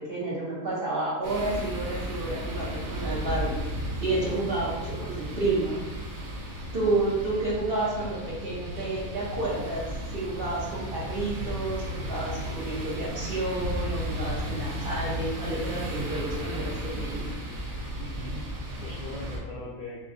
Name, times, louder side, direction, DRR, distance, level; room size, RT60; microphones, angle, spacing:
voice 1, 0.0-3.6 4.0-5.8 6.7-17.3, right 2 dB, 45° right, -6 dB, 1.1 m, -30 dB
sound 1, 1.2-19.4, equal, 85° right, 1.3 m, -34 dB
voice 2, 18.0-20.1, left 1 dB, 50° left, -7 dB, 0.7 m, -40 dB
5.9 x 2.3 x 2.6 m, 1.1 s
omnidirectional pair, 1.4 m